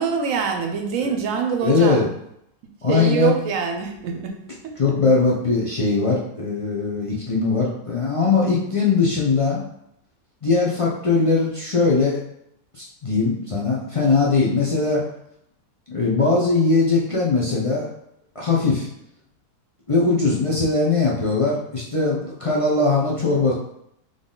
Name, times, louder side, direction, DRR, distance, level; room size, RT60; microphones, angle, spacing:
voice 1, 0.0-2.0 2.9-4.3 4.6-4.7, right 6 dB, 65° right, 3 dB, 1.0 m, -24 dB
voice 2, 1.6-2.1 2.8-3.3 4.8-9.6 10.4-12.2 12.7-15.1 15.9-17.9 18.3-18.9 19.9-23.5, left 4 dB, 45° left, -5 dB, 0.4 m, -20 dB
3.9 x 3.3 x 3.9 m, 0.76 s
omnidirectional pair, 1.7 m